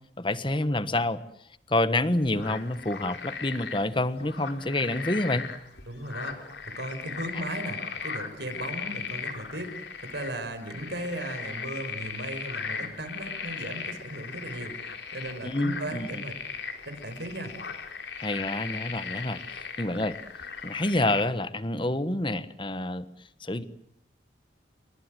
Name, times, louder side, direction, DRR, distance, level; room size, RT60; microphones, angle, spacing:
voice 1, 0.2-1.2 1.7-5.5 15.4-16.1 18.2-20.2 20.6-23.0 23.4-23.6, left 2 dB, 25° left, 14 dB, 1.3 m, -28 dB
sound 1, 2.0-21.2, left 5 dB, 70° left, 3.9 m, -38 dB
voice 2, 5.9-16.4 16.9-17.5, right 1 dB, 65° right, 8 dB, 5.4 m, -37 dB
28.0 x 24.0 x 7.8 m, 0.67 s
head